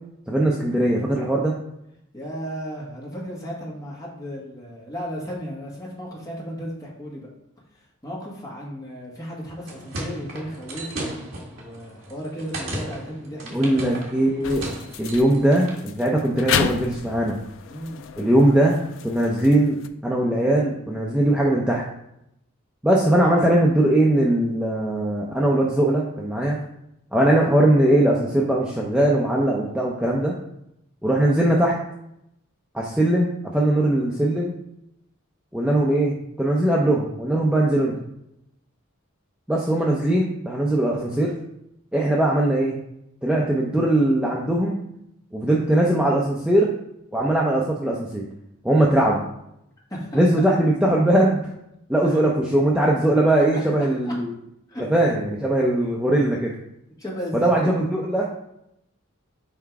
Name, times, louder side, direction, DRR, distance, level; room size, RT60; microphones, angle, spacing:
voice 1, 0.3-1.5 13.5-14.6 15.0-17.4 18.2-18.8 19.0-19.8 20.0-21.8 22.8-26.6 27.1-30.3 31.0-31.7 32.7-34.5 35.5-37.9 39.5-41.3 41.9-42.8 43.2-44.8 45.3-46.7 47.1-48.2 48.6-49.2 50.1-51.4 51.9-54.3 54.9-56.5 57.4-58.3, right 1 dB, 5° right, -3 dB, 0.6 m, -20 dB
voice 2, 2.1-7.3 7.7-11.2 11.6-13.8 17.7-18.0 49.9-50.5 52.0-52.2 53.4-54.1 54.7-54.8 57.0-57.7, equal, 15° left, -4 dB, 1.7 m, -35 dB
sound 1, 9.4-15.8, right 1 dB, 65° right, 1.7 m, -36 dB
sound 2, 14.4-19.9, left 7 dB, 60° left, 0.4 m, -31 dB
5.8 x 4.4 x 4.7 m, 0.80 s
head